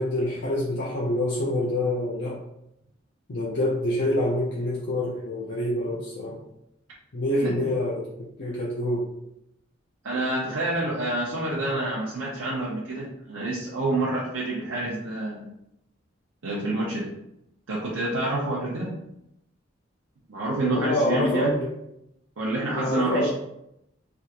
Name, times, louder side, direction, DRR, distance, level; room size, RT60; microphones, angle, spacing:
voice 1, 0.0-2.4 3.3-6.4 7.1-8.1 8.4-9.1 20.6-21.7 22.7-23.3, left 1 dB, 60° left, -5 dB, 0.5 m, -26 dB
voice 2, 7.4-7.7 10.0-15.5 16.4-17.2 17.7-19.0 20.3-21.6 22.4-23.3, right 2 dB, 80° right, -6 dB, 0.6 m, -28 dB
3.4 x 2.4 x 2.8 m, 0.81 s
head